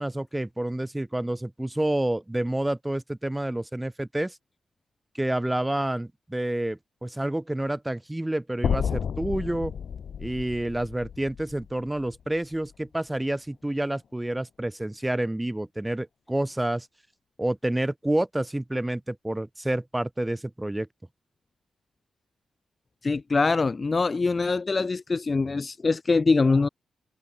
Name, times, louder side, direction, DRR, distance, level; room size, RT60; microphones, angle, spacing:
voice 1, 0.0-4.4 5.1-9.7 10.2-16.9 17.4-20.9, right 1 dB, 10° right, 4.2 m, -29 dB
sound 1, 8.6-12.8, left 7 dB, 70° left, 2.0 m, -32 dB
voice 2, 23.0-26.7, left 4 dB, 40° left, 0.4 m, -23 dB
cardioid pair, 70°, 0 cm